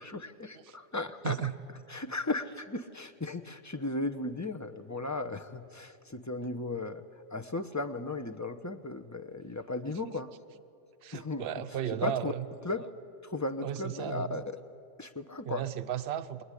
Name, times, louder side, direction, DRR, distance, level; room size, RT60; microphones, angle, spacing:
voice 1, 0.0-1.3 1.9-7.0 7.3-10.3 11.1-11.5 12.0-12.3 12.6-12.9 13.2-14.6 15.0-15.7, left 2 dB, 15° left, 9 dB, 0.8 m, -36 dB
voice 2, 9.8-10.1 11.0-12.5 13.6-14.4 15.5-16.4, right 10 dB, 55° right, 9 dB, 1.0 m, -35 dB
24.5 x 22.0 x 10.0 m, 2.5 s
omnidirectional pair, 1.4 m